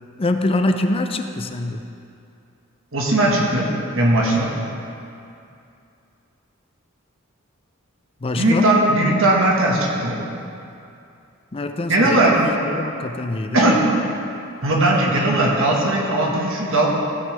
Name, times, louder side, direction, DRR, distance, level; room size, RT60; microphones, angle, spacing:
voice 1, 0.2-1.8 8.2-8.7 11.5-13.7, left 2 dB, 25° left, 6 dB, 0.5 m, -24 dB
voice 2, 2.9-3.7 3.9-4.5 8.4-10.2 11.9-12.4 13.5-13.8 14.6-16.9, right 1 dB, 65° right, -2 dB, 1.7 m, -18 dB
15.5 x 6.4 x 3.4 m, 2.6 s
head